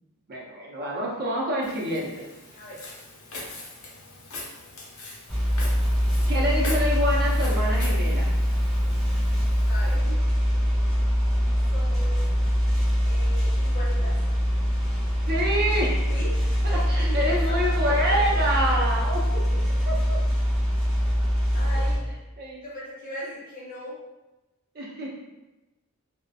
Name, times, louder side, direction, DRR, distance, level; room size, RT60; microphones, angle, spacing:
voice 1, 0.3-2.3 6.3-8.3 15.3-16.1 16.6-19.2 19.9-20.2 22.4-22.6 24.7-25.1, equal, 45° right, -3 dB, 0.5 m, -27 dB
Walk footsteps, 1.6-10.0, left 2 dB, 80° left, 0.6 m, -41 dB
voice 2, 2.6-2.9 9.7-10.2 11.7-12.2 13.0-14.2 16.1-18.2 21.3-22.1 22.6-23.9, equal, 40° left, -5 dB, 0.7 m, -38 dB
sound 1, 5.3-22.0, equal, ahead, 0.5 m, -23 dB
2.3 x 2.0 x 2.6 m, 1.0 s
head